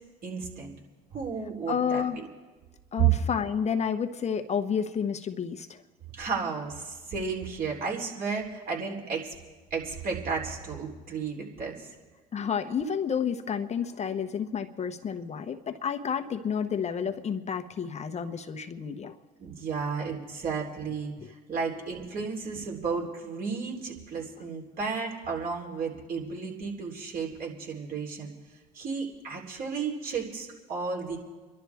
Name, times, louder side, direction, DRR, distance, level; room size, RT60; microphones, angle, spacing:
voice 1, 0.2-0.7 1.1-2.2 3.0-3.1 6.1-9.3 9.7-11.9 19.4-28.3 28.7-31.2, right 6 dB, 55° right, -1 dB, 3.7 m, -32 dB
voice 2, 1.7-2.2 2.9-5.8 12.3-19.2, left 7 dB, 40° left, 7 dB, 1.1 m, -30 dB
28.0 x 11.5 x 3.5 m, 1.3 s
hypercardioid pair, 70°, 18 cm